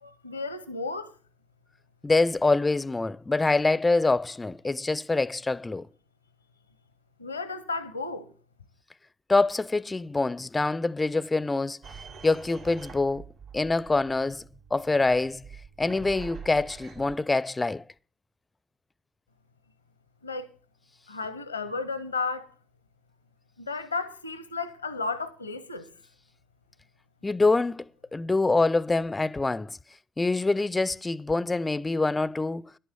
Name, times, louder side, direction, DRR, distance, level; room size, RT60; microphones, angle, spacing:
voice 1, 0.0-1.1 7.2-8.3 20.2-20.5 21.1-22.5 23.6-25.9, left 3 dB, 85° left, 0.8 m, -33 dB
voice 2, 2.0-5.9 9.3-11.8 12.2-13.2 13.5-14.4 14.7-15.4 15.8-17.8 27.2-29.8 30.2-32.6, left 3 dB, 20° left, 0.5 m, -25 dB
sound 1, 11.8-17.1, right 6 dB, 65° right, 2.8 m, -46 dB
11.0 x 9.2 x 6.8 m
figure-of-eight pair, 45°, 0 cm